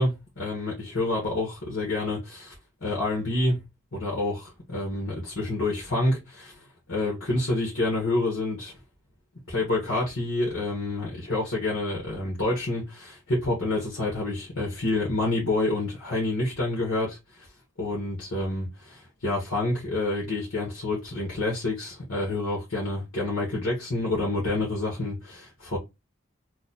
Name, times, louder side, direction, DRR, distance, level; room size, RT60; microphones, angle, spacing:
voice 1, 0.0-2.5 2.8-3.6 3.9-8.8 9.5-17.2 17.8-25.8, left 2 dB, 75° left, 1.3 m, -28 dB
3.1 x 2.2 x 4.0 m
head